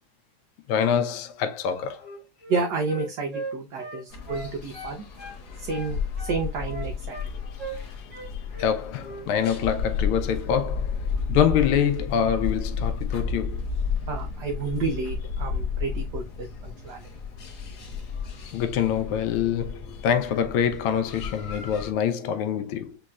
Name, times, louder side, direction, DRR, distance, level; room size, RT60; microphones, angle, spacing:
voice 1, 0.7-2.1 8.6-13.6 18.5-23.0, left 8 dB, 90° left, 1.5 m, -25 dB
Wind instrument woodwind instrument, 1.9-5.4 5.7-7.3 7.6-7.8 8.1-8.8 9.0-9.3, right 1 dB, 5° right, 0.9 m, -38 dB
voice 2, 2.5-5.0 5.6-7.1 14.1-17.1, right 4 dB, 65° right, 1.1 m, -30 dB
sound 1, 4.1-21.9, left 5 dB, 55° left, 1.5 m, -32 dB
6.4 x 3.0 x 2.3 m
omnidirectional pair, 2.3 m